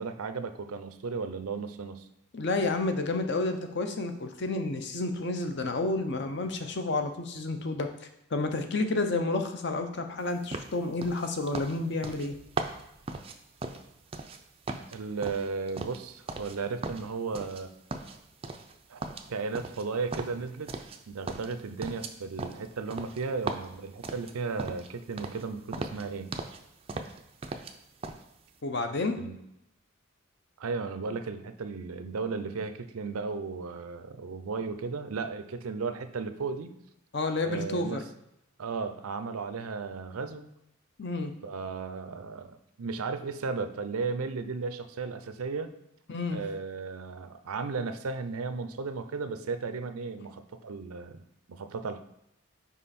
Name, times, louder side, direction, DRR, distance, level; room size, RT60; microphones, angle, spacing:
voice 1, 0.0-2.0 14.9-17.7 18.9-20.7 21.1-26.3 29.2-29.4 30.6-36.7 37.4-38.0 38.6-40.5 41.4-45.7 46.3-51.2 51.5-52.0, right 4 dB, 90° right, 10 dB, 0.5 m, -35 dB
voice 2, 2.3-7.9 8.3-12.4 28.6-29.2 37.1-38.0 41.0-41.3 46.1-46.4, left 2 dB, 55° left, 6 dB, 0.6 m, -30 dB
sound 1, 10.5-14.4 14.7-16.6 16.8-17.6 17.9-18.7 19.0-21.0 21.3-24.9 25.2-25.4 25.7-26.6 26.9-27.7 28.0-28.2, right 3 dB, 25° right, 0.4 m, -38 dB
5.5 x 4.9 x 4.2 m, 0.83 s
head